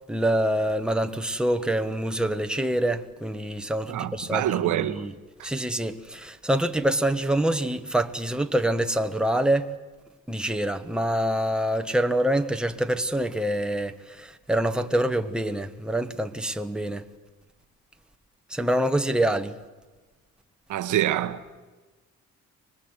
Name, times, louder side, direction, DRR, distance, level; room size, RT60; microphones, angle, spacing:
voice 1, 0.1-5.1 5.4-9.7 10.3-17.0 18.5-19.6, right 1 dB, 5° right, 1.4 m, -26 dB
voice 2, 3.9-5.1 5.4-5.5 20.7-21.6, right 12 dB, 80° right, 1.3 m, -26 dB
24.5 x 20.5 x 8.1 m
cardioid pair, 90°, 30 cm